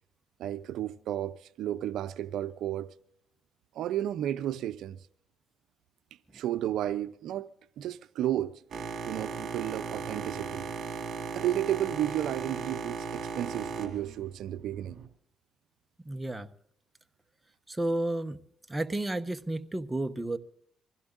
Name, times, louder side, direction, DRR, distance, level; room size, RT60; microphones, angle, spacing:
voice 1, 0.4-2.9 3.7-5.0 6.3-7.5 7.8-8.6 9.1-10.7 11.3-15.0, right 12 dB, 80° right, 0.6 m, -32 dB
Boat Water vehicle, 8.7-15.1, right 5 dB, 55° right, 2.5 m, -37 dB
voice 2, 16.0-16.5 17.7-18.4 18.7-20.4, right 1 dB, 15° right, 1.1 m, -31 dB
25.0 x 16.0 x 2.5 m
cardioid pair, 90°, 0 cm